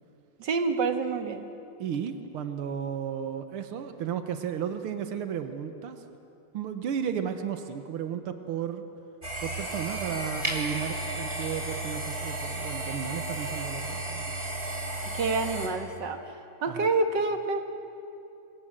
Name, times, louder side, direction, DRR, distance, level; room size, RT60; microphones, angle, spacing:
voice 1, 0.4-1.5 15.1-16.3 16.6-17.6, right 3 dB, 55° right, 6 dB, 2.1 m, -27 dB
voice 2, 1.8-6.0 6.5-8.8 9.4-14.3 16.7-16.9, right 8 dB, 85° right, 8 dB, 2.1 m, -34 dB
sound 1, 9.2-15.7, right 1 dB, 30° right, 3.6 m, -33 dB
27.5 x 23.5 x 7.6 m, 2.8 s
omnidirectional pair, 2.3 m